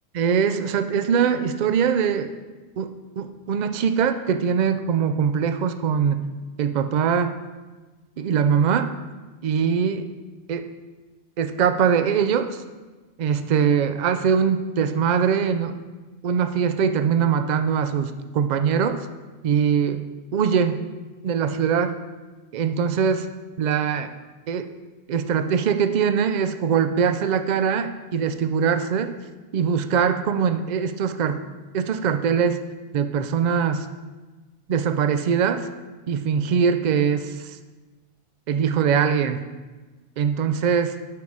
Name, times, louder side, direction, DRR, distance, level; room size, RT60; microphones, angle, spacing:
voice 1, 0.1-2.3 2.8-6.2 6.6-7.4 8.2-8.9 9.4-10.1 10.5-10.7 11.4-12.6 13.2-15.8 16.2-19.0 19.4-20.0 20.3-20.8 21.2-21.9 22.5-23.3 23.6-24.1 24.5-24.7 25.1-29.1 29.5-31.4 31.7-32.6 32.9-33.9 34.7-35.7 36.1-37.6 38.5-39.4 40.2-41.0, right 7 dB, 75° right, 9 dB, 0.4 m, -22 dB
8.4 x 4.6 x 5.4 m, 1.2 s
omnidirectional pair, 1.3 m